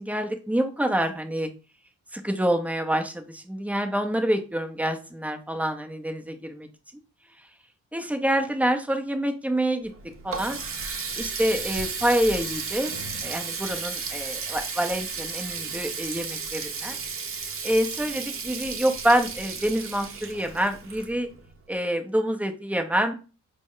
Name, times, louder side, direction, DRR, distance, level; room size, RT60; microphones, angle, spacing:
voice 1, 0.0-1.5 2.1-6.7 7.9-9.9 10.2-10.6 11.2-12.9 13.2-16.9 17.6-21.3 21.7-23.2, right 1 dB, 5° right, 5 dB, 0.6 m, -26 dB
Water tap faucet, 9.9-21.5, right 5 dB, 40° right, 0.7 m, -34 dB
4.2 x 2.1 x 3.7 m, 0.33 s
cardioid pair, 100°, 32 cm